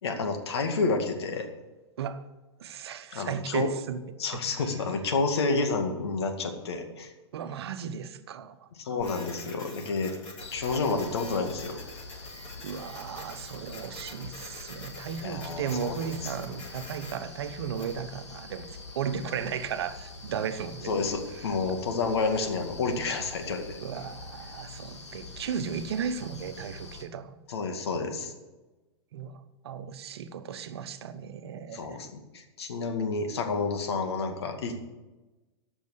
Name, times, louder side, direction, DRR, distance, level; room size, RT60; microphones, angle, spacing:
voice 1, 0.0-1.5 3.1-3.7 4.2-7.1 8.7-10.1 10.5-11.8 15.2-16.1 20.8-23.6 27.5-28.3 31.7-32.1 32.3-34.8, left 4 dB, 70° left, 5 dB, 2.2 m, -29 dB
voice 2, 2.6-4.0 4.3-4.7 7.3-8.7 12.6-21.0 21.3-21.5 23.8-27.4 29.1-32.0, right 7 dB, 65° right, 11 dB, 1.1 m, -35 dB
Printer, 9.0-18.0, left 2 dB, 40° left, 5.4 m, -47 dB
sound 1, 10.4-27.0, left 3 dB, 85° left, 2.1 m, -45 dB
13.5 x 6.2 x 8.0 m, 1.1 s
hypercardioid pair, 105°, 14 cm